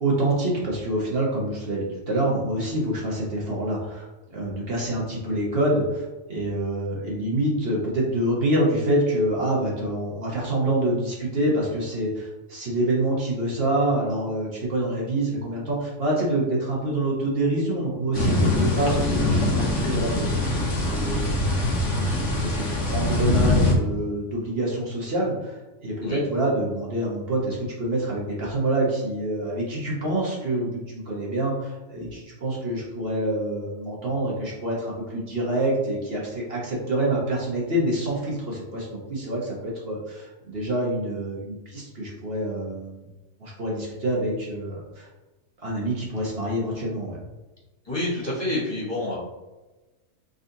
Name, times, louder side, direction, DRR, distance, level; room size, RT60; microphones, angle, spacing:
voice 1, 0.0-20.6 20.9-21.5 21.9-43.0 43.4-45.1 45.6-47.2, right 1 dB, 55° right, -4 dB, 1.2 m, -26 dB
sound 1, 18.1-23.7, left 2 dB, 80° left, 1.2 m, -23 dB
voice 2, 47.8-49.2, left 1 dB, 20° left, -9 dB, 1.4 m, -28 dB
4.0 x 3.8 x 2.7 m, 1.1 s
omnidirectional pair, 1.2 m